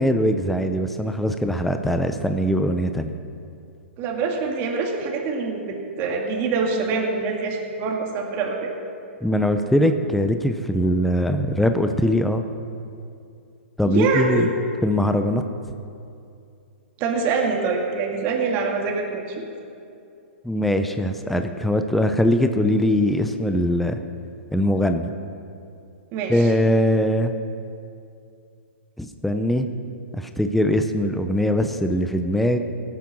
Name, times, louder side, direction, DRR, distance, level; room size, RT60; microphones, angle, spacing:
voice 1, 0.0-3.1 9.2-12.4 13.8-14.5 14.8-15.4 20.4-24.0 24.5-25.1 26.3-27.3 29.0-29.7 30.1-32.6, equal, ahead, 7 dB, 0.6 m, -21 dB
voice 2, 4.0-8.7 13.8-14.5 17.0-19.5 26.1-26.5, right 4 dB, 35° right, 1 dB, 2.1 m, -25 dB
18.0 x 9.3 x 6.2 m, 2.5 s
hypercardioid pair, 135°, 7 cm